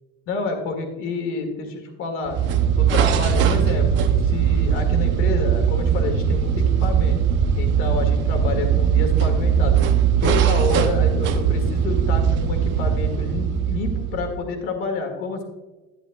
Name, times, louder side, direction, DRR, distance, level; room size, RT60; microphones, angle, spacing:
voice 1, 0.3-2.4 2.8-7.2 7.5-9.8 10.2-15.4, left 3 dB, 45° left, 4 dB, 1.8 m, -28 dB
sound 1, 2.3-14.4, right 8 dB, 40° right, 0.7 m, -20 dB
11.5 x 10.5 x 2.3 m, 1.2 s
cardioid pair, 180°, 29 cm